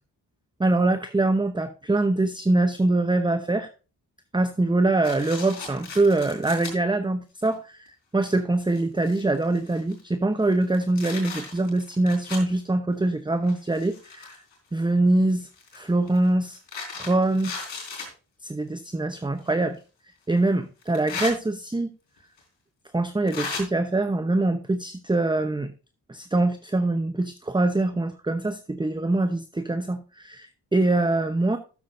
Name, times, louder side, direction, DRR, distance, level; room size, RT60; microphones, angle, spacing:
voice 1, 0.6-3.7 4.3-14.4 14.7-15.5 15.7-16.6 17.0-17.5 18.4-19.8 20.3-21.9 22.9-25.7 26.1-31.6, right 2 dB, 10° right, 9 dB, 0.8 m, -24 dB
sound 1, 5.0-6.7 7.4-7.5 8.2-8.3 8.6-10.0 10.5-12.5 13.4-14.5 15.5-18.1 19.4-19.5 20.8-21.3 22.4-22.5 23.3-23.6, left 4 dB, 75° left, 3.8 m, -36 dB
13.0 x 7.3 x 2.6 m, 0.34 s
supercardioid pair, 45°, 44 cm